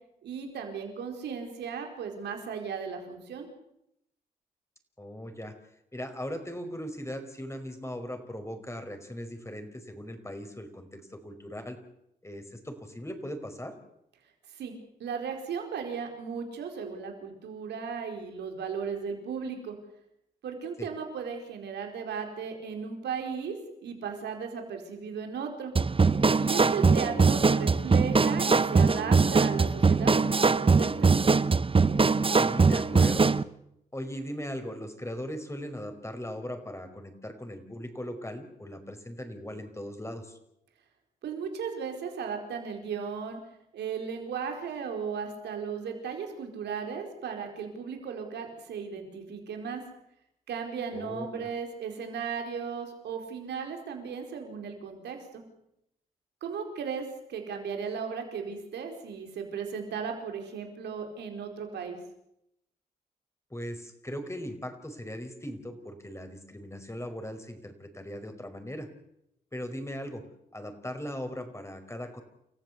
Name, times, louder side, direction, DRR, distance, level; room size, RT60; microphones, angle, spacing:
voice 1, 0.2-3.5 14.5-14.7 15.0-19.8 20.4-23.6 23.8-25.7 26.4-31.1 41.2-43.4 43.7-49.8 50.5-55.4 56.4-62.0, right 6 dB, 80° right, 4 dB, 4.6 m, -36 dB
voice 2, 5.0-5.5 5.9-11.8 12.2-13.8 20.8-20.9 32.3-33.4 33.9-40.4 50.9-51.5 63.5-68.9 69.5-70.2 70.5-72.2, equal, 15° left, 7 dB, 5.3 m, -39 dB
sound 1, 25.8-33.4, right 4 dB, 30° right, 0.9 m, -22 dB
29.5 x 15.0 x 8.2 m, 0.81 s
supercardioid pair, 40°, 17 cm